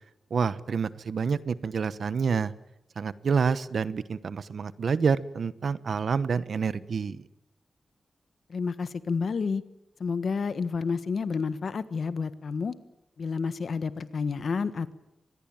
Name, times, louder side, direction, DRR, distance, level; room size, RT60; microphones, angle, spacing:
voice 1, 0.3-2.5 3.0-7.2, right 5 dB, 60° right, 16 dB, 1.0 m, -28 dB
voice 2, 8.5-9.6 10.0-12.7 13.2-14.9, left 5 dB, 60° left, 13 dB, 1.4 m, -30 dB
25.0 x 20.5 x 8.9 m, 0.88 s
wide cardioid pair, 130°, 0 cm